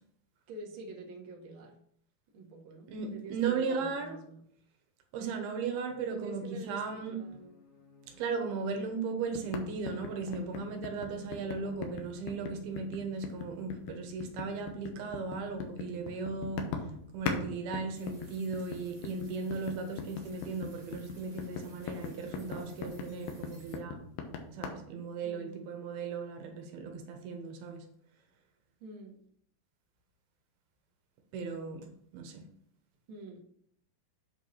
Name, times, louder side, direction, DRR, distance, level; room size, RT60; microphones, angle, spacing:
voice 1, 0.5-1.8 2.3-4.4 6.1-7.6 25.2-25.6 28.8-29.2 33.1-33.4, right 2 dB, 50° right, -1 dB, 1.7 m, -47 dB
voice 2, 2.9-4.2 5.1-7.2 8.1-16.7 17.1-24.0 24.5-27.8 31.3-32.4, right 4 dB, 80° right, 4 dB, 3.0 m, -36 dB
sound 1, 5.9-13.0, left 3 dB, 60° left, 3.5 m, -60 dB
sound 2, 9.4-17.4 17.7-24.7, left 5 dB, 85° left, 3.0 m, -40 dB
sound 3, 17.9-23.8, right 2 dB, 65° right, 0.4 m, -60 dB
8.4 x 4.7 x 5.6 m, 0.67 s
omnidirectional pair, 4.5 m